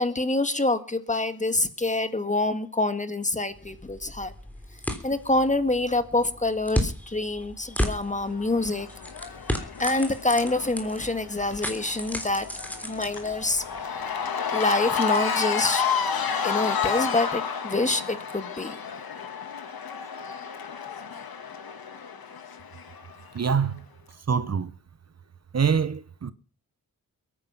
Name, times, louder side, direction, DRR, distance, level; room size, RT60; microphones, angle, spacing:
voice 1, 0.0-4.3 5.0-8.9 9.8-12.5 12.8-13.6 14.5-18.8, left 2 dB, 20° left, 1.7 m, -26 dB
sound 1, 3.5-13.8, equal, 5° left, 3.7 m, -34 dB
Cheering / Crowd, 8.1-23.4, left 6 dB, 80° left, 2.1 m, -31 dB
voice 2, 23.3-23.8 24.3-24.7 25.5-26.3, right 6 dB, 45° right, 0.9 m, -24 dB
22.0 x 10.0 x 5.8 m
cardioid pair, 80°, 36 cm